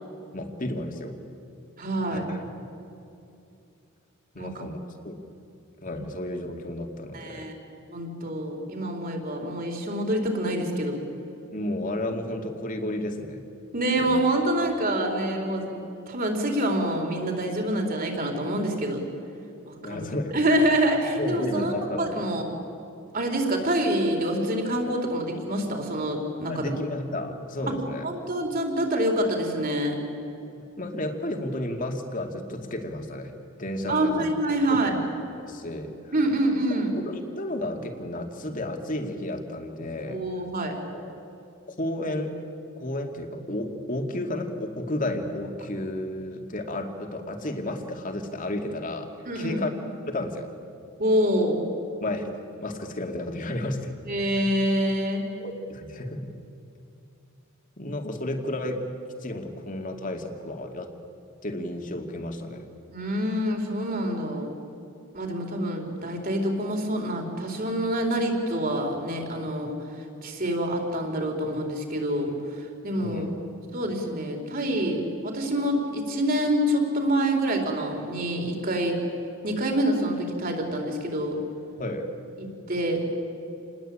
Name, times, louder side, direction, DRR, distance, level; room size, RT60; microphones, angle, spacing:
voice 1, 0.3-1.2 2.1-2.5 4.3-4.8 5.0-5.2 5.8-7.5 11.5-13.4 14.0-14.1 19.8-20.4 21.2-22.3 26.5-28.1 30.6-33.3 33.6-34.3 34.7-36.1 36.9-40.5 40.9-41.1 41.7-42.4 42.8-49.1 49.3-50.5 52.0-52.3 52.6-54.0 55.4-56.3 57.8-58.8 59.2-60.9 61.4-62.7 73.0-73.4 81.8-82.1, left 1 dB, 35° left, 4 dB, 2.4 m, -32 dB
voice 2, 1.8-2.2 4.3-4.5 7.1-11.0 13.7-15.7 16.1-19.0 19.7-20.0 20.3-22.4 23.1-26.8 27.7-27.8 28.0-30.0 33.9-35.0 36.1-37.0 40.1-40.8 49.2-49.6 51.0-51.6 54.0-55.2 62.9-64.5 65.1-69.8 70.2-73.2 73.7-79.0 79.4-81.4 82.4-83.0, right 1 dB, 40° right, 2 dB, 4.3 m, -26 dB
29.0 x 20.5 x 8.9 m, 2.7 s
head